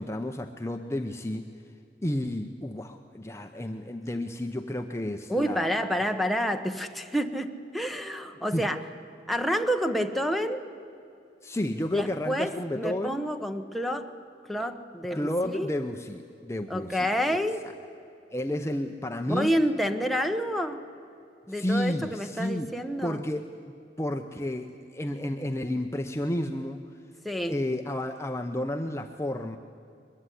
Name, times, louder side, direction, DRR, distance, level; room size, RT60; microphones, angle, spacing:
voice 1, 0.0-1.5 2.0-5.7 8.5-8.6 11.4-13.2 15.1-17.1 18.3-19.6 21.5-22.7 23.0-23.5 24.0-26.8 27.5-29.6, left 1 dB, 15° left, 0.8 m, -31 dB
voice 2, 5.3-8.8 9.3-10.6 11.9-14.1 14.5-15.7 16.7-17.6 19.3-20.8 21.5-23.2 27.2-27.6, equal, ahead, 1.1 m, -28 dB
22.5 x 22.0 x 10.0 m
head